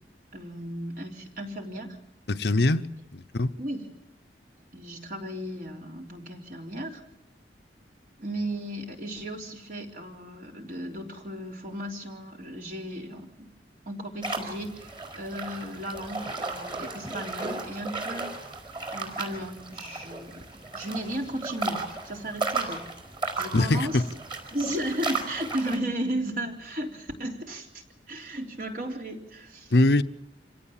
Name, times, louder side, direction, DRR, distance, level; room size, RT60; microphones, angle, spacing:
voice 1, 0.3-2.0 3.6-3.9 4.7-7.0 8.2-13.5 13.9-18.3 18.9-20.4 20.7-22.9 23.4-24.0 24.5-29.7, right 1 dB, 50° right, 3.6 m, -35 dB
voice 2, 2.3-2.9 3.1-3.5 23.5-24.0 29.7-30.0, left 2 dB, 65° left, 0.8 m, -22 dB
sound 1, 14.2-25.8, right 3 dB, 30° right, 4.7 m, -35 dB
26.5 x 17.5 x 7.4 m
head